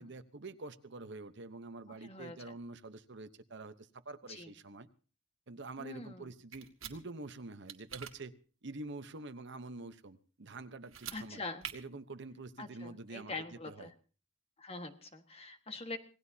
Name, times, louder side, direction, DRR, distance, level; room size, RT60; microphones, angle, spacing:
voice 1, 0.0-4.9 5.5-8.3 8.6-11.4 11.7-13.9, right 3 dB, 60° right, 11 dB, 1.0 m, -47 dB
voice 2, 2.0-2.4 4.3-4.5 5.8-6.2 11.1-11.6 12.6-13.9 14.6-16.0, left 3 dB, 30° left, 7 dB, 1.6 m, -44 dB
sound 1, 6.5-7.0 7.7-8.1 10.8-11.2 11.6-11.7, right 9 dB, 85° right, 2.0 m, -44 dB
26.0 x 18.5 x 2.8 m, 0.39 s
head